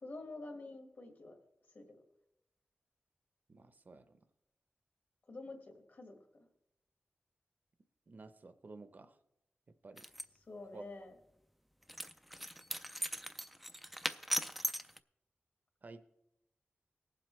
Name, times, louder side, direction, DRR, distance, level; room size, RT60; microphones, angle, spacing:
voice 1, 0.0-1.4 1.8-2.0 5.3-6.5 10.5-11.2, left 2 dB, 55° left, 4 dB, 1.8 m, -48 dB
voice 2, 3.5-4.2 8.1-9.2 9.7-10.1 10.7-10.9 15.8-16.1, right 3 dB, 45° right, 10 dB, 0.7 m, -53 dB
sound 1, 10.0-10.2 11.9-15.0, equal, ahead, 0.3 m, -39 dB
19.0 x 7.6 x 3.2 m, 0.84 s
wide cardioid pair, 130°, 4 cm